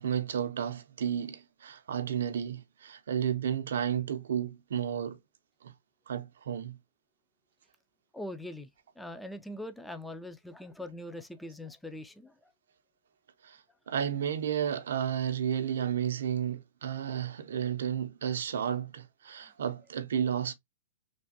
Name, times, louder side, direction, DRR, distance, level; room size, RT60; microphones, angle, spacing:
voice 1, 0.0-5.2 5.6-5.7 6.1-6.8 13.4-13.6 13.9-20.5, right 9 dB, 75° right, 0.5 m, -32 dB
voice 2, 8.1-8.7 9.0-12.5, left 1 dB, 5° left, 0.3 m, -42 dB
3.3 x 2.2 x 2.6 m
hypercardioid pair, 135°, 0 cm